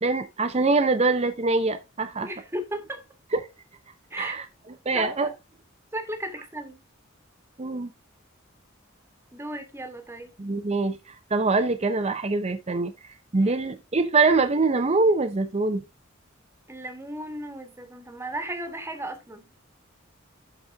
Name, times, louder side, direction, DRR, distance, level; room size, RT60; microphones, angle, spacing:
voice 1, 0.0-2.3 3.3-3.4 4.2-4.4 4.9-5.3 7.6-7.9 10.4-12.9 13.3-15.8, right 3 dB, 30° right, 0.7 m, -24 dB
voice 2, 2.2-3.0 4.1-4.4 4.9-5.3 5.9-6.8 9.3-10.3 13.3-13.6 16.7-19.5, right 1 dB, 15° right, 1.4 m, -35 dB
11.5 x 4.3 x 3.4 m
head